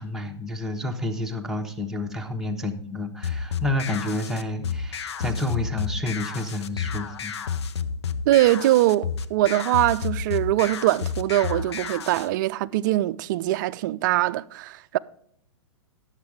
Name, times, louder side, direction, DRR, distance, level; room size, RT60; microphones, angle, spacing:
voice 1, 0.0-7.3, left 2 dB, 5° right, 1.1 m, -29 dB
sound 1, 3.2-12.3, left 6 dB, 70° left, 0.7 m, -31 dB
voice 2, 8.3-15.0, right 15 dB, 45° right, 0.4 m, -22 dB
10.5 x 7.3 x 4.9 m
hypercardioid pair, 120°, 14 cm